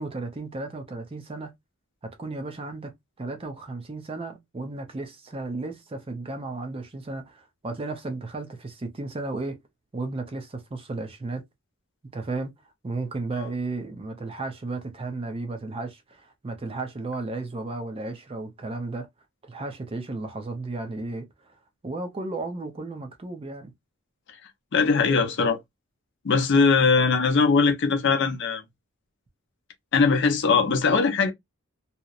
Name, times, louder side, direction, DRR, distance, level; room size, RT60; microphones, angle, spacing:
voice 1, 0.0-1.5 2.0-9.6 9.9-11.4 12.1-12.5 12.8-19.1 19.4-21.5 21.8-23.7, right 3 dB, 25° right, 0.5 m, -34 dB
voice 2, 24.7-25.6 26.2-28.6 29.9-31.3, left 4 dB, 55° left, 0.5 m, -20 dB
2.8 x 2.0 x 2.3 m
head